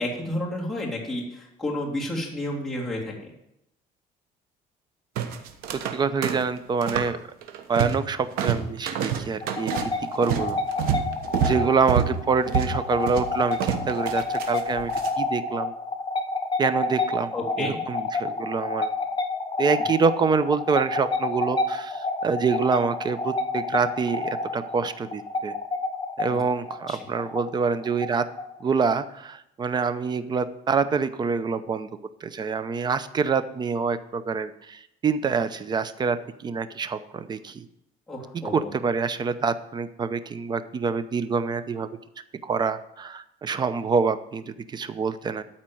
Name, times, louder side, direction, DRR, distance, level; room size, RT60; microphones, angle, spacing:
voice 1, 0.0-3.1 11.4-11.7 17.3-17.8 26.3-26.4 26.9-27.0 38.1-38.7, left 1 dB, ahead, -6 dB, 3.4 m, -31 dB
sound 1, 5.2-6.0 6.2-7.1 7.4-8.1 8.4-15.1, right 8 dB, 80° right, 1.2 m, -28 dB
voice 2, 5.9-7.2 7.7-10.6 11.4-14.9 15.2-15.7 16.6-18.9 19.6-25.5 26.2-28.2 28.6-31.9 32.2-36.2 36.4-37.7 38.5-41.9 42.4-45.4, right 5 dB, 30° right, 12 dB, 0.7 m, -26 dB
sound 2, 9.4-28.8, left 3 dB, 30° left, 1.0 m, -29 dB
13.0 x 4.4 x 7.7 m, 0.80 s
cardioid pair, 135°, 15 cm